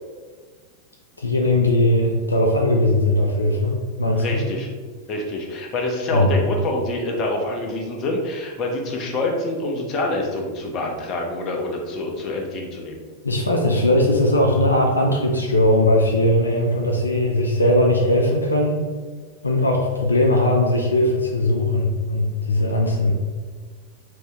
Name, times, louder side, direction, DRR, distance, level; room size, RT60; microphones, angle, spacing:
voice 1, 1.2-4.4 6.1-6.3 13.2-18.8 19.4-23.1, left 1 dB, 80° left, 1 dB, 0.4 m, -19 dB
voice 2, 4.2-4.7 5.1-13.0, left 2 dB, 35° left, 1 dB, 0.7 m, -26 dB
3.5 x 2.7 x 3.3 m, 1.5 s
figure-of-eight pair, 90°, 0 cm